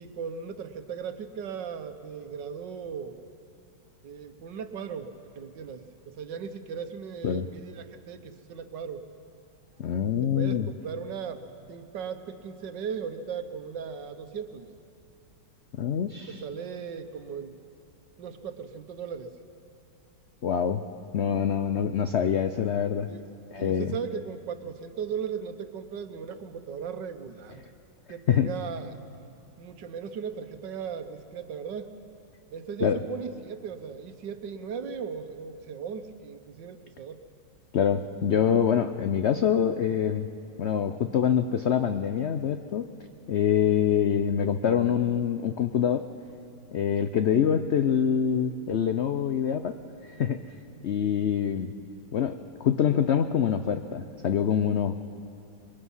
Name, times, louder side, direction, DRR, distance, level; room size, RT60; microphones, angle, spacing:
voice 1, 0.0-3.2 4.0-9.1 10.2-14.7 16.3-17.5 18.2-19.3 23.1-23.2 23.6-27.6 28.1-29.0 29.6-31.9 32.5-37.2, right 6 dB, 75° right, 8 dB, 1.7 m, -37 dB
voice 2, 9.8-10.7 15.7-16.4 20.4-20.8 21.1-23.1 23.5-23.9 28.3-28.5 32.8-33.0 37.7-40.3 40.6-42.9 43.3-46.1 46.7-49.8 50.1-50.4 50.8-51.7 52.1-55.0, left 8 dB, 80° left, 8 dB, 0.6 m, -25 dB
26.0 x 22.0 x 5.6 m, 2.7 s
omnidirectional pair, 1.9 m